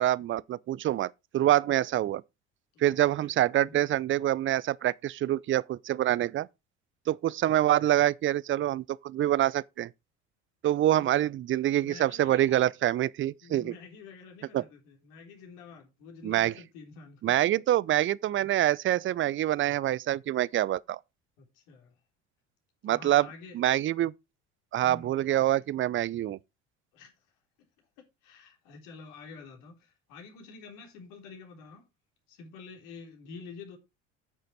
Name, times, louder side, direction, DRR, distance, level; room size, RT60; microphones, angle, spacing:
voice 1, 0.0-2.2 2.8-6.5 7.1-9.9 10.6-13.7 14.5-14.6 16.2-16.5 17.2-21.0 22.8-23.3 23.5-24.1 24.7-26.4, right 13 dB, 35° right, 0.5 m, -26 dB
voice 2, 11.8-12.7 13.4-17.3 21.4-21.9 22.8-23.5 24.8-25.2 26.9-27.1 28.2-31.8 32.3-33.8, left 4 dB, 65° left, 3.6 m, -48 dB
9.3 x 6.7 x 4.6 m
hypercardioid pair, 65°, 37 cm